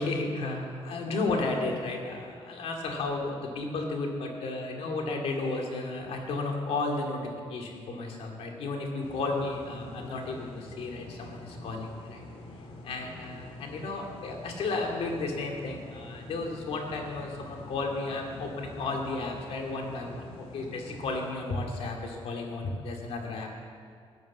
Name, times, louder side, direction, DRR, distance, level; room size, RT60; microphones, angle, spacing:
voice 1, 0.0-12.2 12.8-23.5, left 3 dB, 85° left, 1 dB, 2.3 m, -33 dB
sound 1, 9.0-21.3, left 2 dB, 65° left, 1.9 m, -46 dB
14.5 x 9.3 x 7.3 m, 2.2 s
cardioid pair, 105°, 10 cm